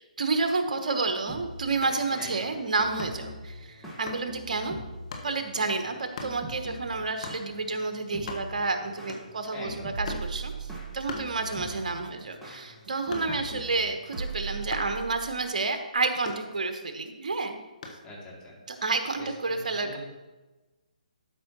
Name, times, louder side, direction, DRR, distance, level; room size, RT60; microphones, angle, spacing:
voice 1, 0.2-4.8 5.2-17.6 18.7-20.0, right 3 dB, 65° right, 6 dB, 1.1 m, -30 dB
sound 1, 1.3-15.0, left 1 dB, 5° right, 1.7 m, -43 dB
sound 2, 1.8-2.1 3.0-3.3 4.1-4.3 5.1-5.3 6.1-6.4 7.2-7.5 7.9-8.7 9.1-9.5 10.0-10.4 11.1-11.8 12.2-13.6 14.7-15.0 16.2-16.9 17.8-18.1, left 3 dB, 55° left, 1.4 m, -40 dB
voice 2, 2.2-2.5 9.5-9.9 13.2-13.6 18.0-18.5 19.2-20.0, left 1 dB, 15° left, -6 dB, 2.5 m, -43 dB
sound 3, 9.9-11.2 13.1-13.2 14.2-15.5 17.3-17.4 17.9-18.0, right 5 dB, 80° right, 0.5 m, -37 dB
12.5 x 5.4 x 3.0 m, 1.1 s
figure-of-eight pair, 140°, 4 cm